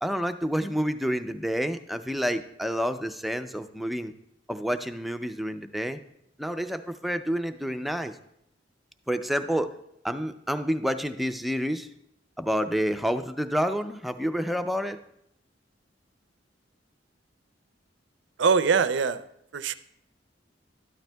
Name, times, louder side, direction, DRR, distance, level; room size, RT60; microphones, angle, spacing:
voice 1, 0.0-4.1 4.5-6.0 6.4-8.2 9.1-9.7 10.0-11.9 12.4-15.0, equal, ahead, 8 dB, 0.4 m, -29 dB
voice 2, 18.4-19.3 19.5-19.8, right 5 dB, 70° right, 13 dB, 0.5 m, -23 dB
13.0 x 12.0 x 2.2 m, 0.76 s
head